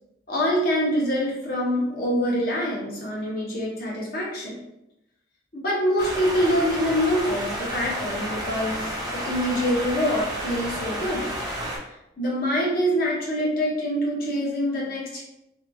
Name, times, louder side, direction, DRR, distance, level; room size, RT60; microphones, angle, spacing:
voice 1, 0.3-4.6 5.5-11.3 12.2-15.2, equal, 55° left, -4 dB, 0.9 m, -25 dB
sound 1, 6.0-11.8, right 1 dB, 25° right, 0.5 m, -31 dB
2.7 x 2.2 x 2.7 m, 0.84 s
head